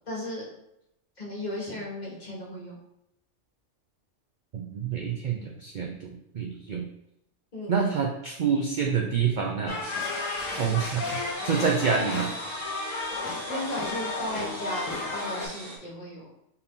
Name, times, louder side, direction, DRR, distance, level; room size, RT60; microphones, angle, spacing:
voice 1, 0.1-0.5 1.2-2.8 7.5-7.7 10.6-10.8 13.5-16.3, left 1 dB, 35° left, -5 dB, 1.3 m, -35 dB
voice 2, 4.5-6.9 7.7-9.8 10.6-11.0 11.4-12.3, right 6 dB, 60° right, 1 dB, 0.5 m, -27 dB
sound 1, 9.7-15.5, left 3 dB, 85° left, 1.2 m, -33 dB
sound 2, 9.8-15.8, right 1 dB, 45° right, 1.4 m, -41 dB
4.4 x 2.7 x 3.5 m, 0.81 s
omnidirectional pair, 1.3 m